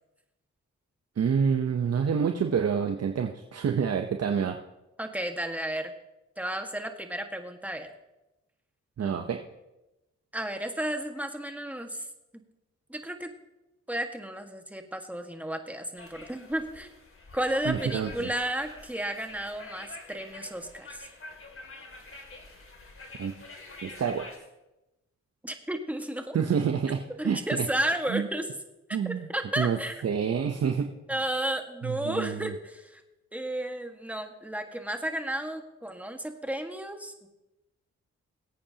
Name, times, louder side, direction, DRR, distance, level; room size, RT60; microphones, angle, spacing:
voice 1, 1.2-4.6 9.0-9.4 17.6-18.3 23.2-23.3 23.8-24.3 26.3-27.7 28.1-28.3 28.9-29.3 29.6-30.9 31.8-32.5, right 7 dB, 55° right, 5 dB, 0.8 m, -28 dB
voice 2, 5.0-5.9 6.4-7.9 10.3-12.0 12.9-13.3 13.9-16.9 17.3-21.1 25.4-26.4 27.2-28.4 29.0-30.0 31.1-33.0 33.3-37.3, right 1 dB, 5° right, 5 dB, 1.6 m, -33 dB
sound 1, 16.0-24.4, left 3 dB, 45° left, 2.5 m, -46 dB
20.5 x 8.6 x 2.9 m, 0.98 s
cardioid pair, 60°, 29 cm